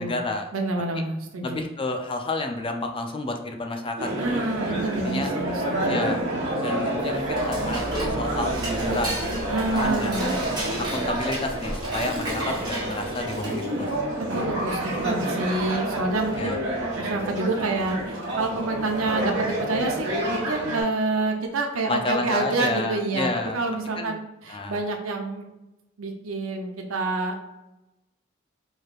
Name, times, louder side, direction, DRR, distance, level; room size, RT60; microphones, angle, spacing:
voice 1, 0.0-0.5 1.4-4.4 5.0-5.3 5.9-6.2 6.6-9.2 9.5-10.3 10.9-13.9 14.6-14.7 16.4-16.6 21.9-23.6 24.0-24.2 24.5-24.8, left 2 dB, 25° left, 5 dB, 0.4 m, -30 dB
voice 2, 0.5-1.6 4.2-6.0 9.5-10.4 14.2-16.6 17.0-25.4 26.0-27.5, right 2 dB, 90° right, 3 dB, 0.7 m, -28 dB
sound 1, 4.0-20.8, right 1 dB, 65° right, 1.3 m, -28 dB
Dishes pots and pans / Cutlery silverware, 6.9-13.8, right 1 dB, 20° right, 1.2 m, -34 dB
4.7 x 3.1 x 2.5 m, 0.96 s
head